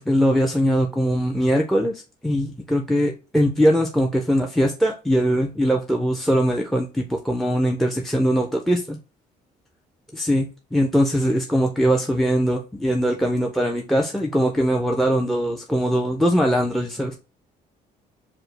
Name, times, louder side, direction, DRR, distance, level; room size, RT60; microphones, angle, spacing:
voice 1, 0.0-9.0 10.1-17.1, equal, ahead, 4 dB, 0.4 m, -21 dB
4.9 x 2.0 x 3.2 m, 0.32 s
cardioid pair, 110°, 17 cm